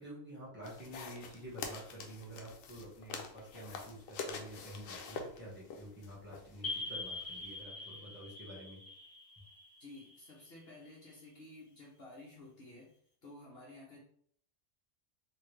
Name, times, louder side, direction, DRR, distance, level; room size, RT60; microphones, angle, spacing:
voice 1, 0.0-8.8, right 1 dB, 10° right, -7 dB, 1.3 m, -49 dB
sound 1, 0.6-7.6, left 4 dB, 85° left, 1.0 m, -46 dB
sound 2, 6.6-11.1, left 3 dB, 20° left, 0.7 m, -44 dB
voice 2, 9.8-12.9 13.2-14.0, left 2 dB, 55° left, -4 dB, 1.0 m, -53 dB
3.7 x 2.7 x 3.1 m, 0.62 s
omnidirectional pair, 1.3 m